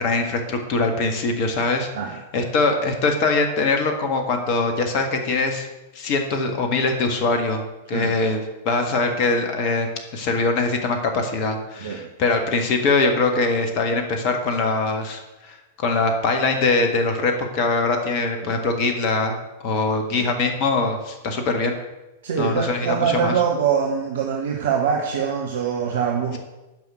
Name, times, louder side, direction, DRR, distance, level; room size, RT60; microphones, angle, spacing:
voice 1, 0.0-1.9 2.3-5.7 5.9-7.6 7.9-9.9 10.1-19.3 19.6-21.8 22.4-23.3, left 3 dB, 40° left, 5 dB, 1.6 m, -22 dB
voice 2, 22.2-26.4, right 7 dB, 60° right, 1 dB, 1.2 m, -23 dB
9.3 x 5.8 x 7.6 m, 1.0 s
figure-of-eight pair, 95°, 0 cm